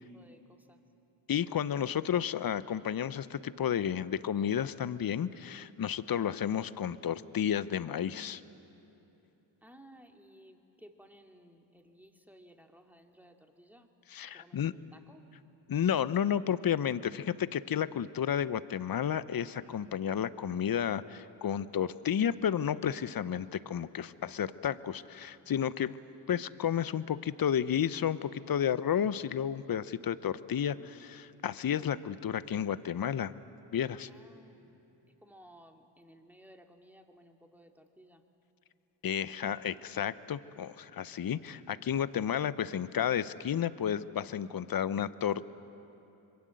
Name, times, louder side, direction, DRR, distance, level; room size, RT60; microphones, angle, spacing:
voice 1, 0.1-0.8 9.6-13.9 14.3-15.3 34.1-34.7 35.1-38.2, equal, 5° right, 4 dB, 2.6 m, -57 dB
voice 2, 1.3-8.4 14.1-14.7 15.7-26.0 26.3-33.4 33.7-34.1 39.0-45.5, left 9 dB, 45° left, 16 dB, 0.9 m, -32 dB
26.0 x 22.5 x 7.8 m, 2.9 s
supercardioid pair, 45°, 50 cm